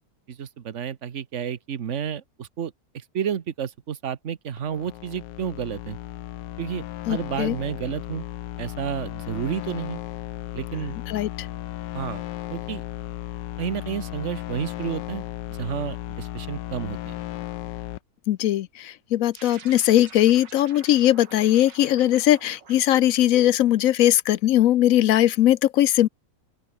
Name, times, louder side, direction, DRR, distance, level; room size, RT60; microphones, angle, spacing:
voice 1, 0.3-6.0 6.6-8.2 8.6-10.0 10.5-11.0 11.9-12.2 12.5-12.8 13.6-15.2 15.5-17.2, right 8 dB, 45° right, 1.3 m, -31 dB
sound 1, 4.6-18.0, left 14 dB, 85° left, 1.4 m, -35 dB
voice 2, 7.1-7.6 11.1-11.5 18.3-26.1, left 13 dB, 70° left, 0.8 m, -20 dB
sound 2, 19.3-24.0, right 6 dB, 85° right, 2.7 m, -48 dB
open air
omnidirectional pair, 1.9 m